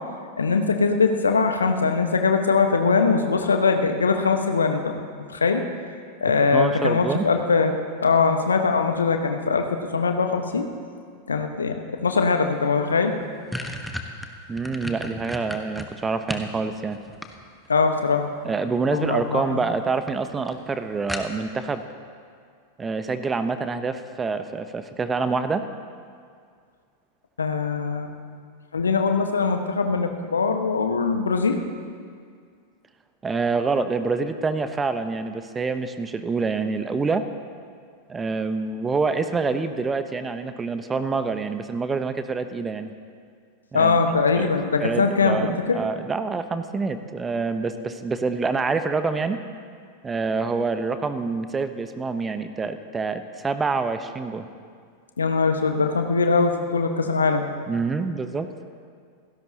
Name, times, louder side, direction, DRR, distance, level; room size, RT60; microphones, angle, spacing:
voice 1, 0.4-4.9 5.3-5.6 6.2-7.7 8.0-10.7 11.3-13.1 17.7-18.3 18.9-19.6 27.4-28.1 28.7-31.6 43.7-45.8 55.2-57.5, left 4 dB, 75° left, 5 dB, 1.4 m, -21 dB
voice 2, 6.5-7.3 14.5-17.0 18.4-21.8 22.8-25.7 33.2-37.3 38.1-42.9 43.7-44.0 44.4-44.5 44.8-49.4 50.0-54.5 57.7-58.5, right 4 dB, 15° right, 10 dB, 0.9 m, -26 dB
sound 1, 12.6-12.7 13.0-16.5 16.9-17.8 18.9-19.3 19.6-19.7 20.1-20.2 20.5-20.6 21.1-21.6, left 1 dB, ahead, 1.3 m, -33 dB
29.0 x 16.5 x 2.9 m, 2.2 s
figure-of-eight pair, 90°, 0 cm